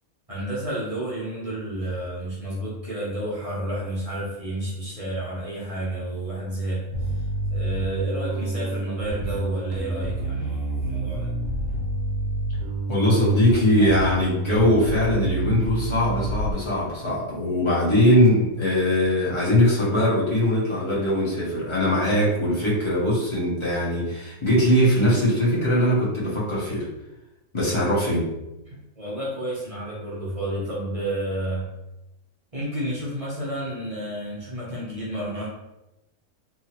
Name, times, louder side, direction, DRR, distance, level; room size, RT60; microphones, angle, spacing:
voice 1, 0.3-6.9 7.1-7.2 7.5-11.3 13.8-14.0 28.7-31.7 32.5-35.5, right 1 dB, 35° right, -7 dB, 0.6 m, -31 dB
Bass guitar, 6.9-16.5, right 2 dB, 75° right, 1.1 m, -28 dB
voice 2, 12.9-26.9 27.5-28.3, left 1 dB, 25° left, -8 dB, 0.8 m, -21 dB
2.8 x 2.4 x 2.8 m, 0.94 s
omnidirectional pair, 1.6 m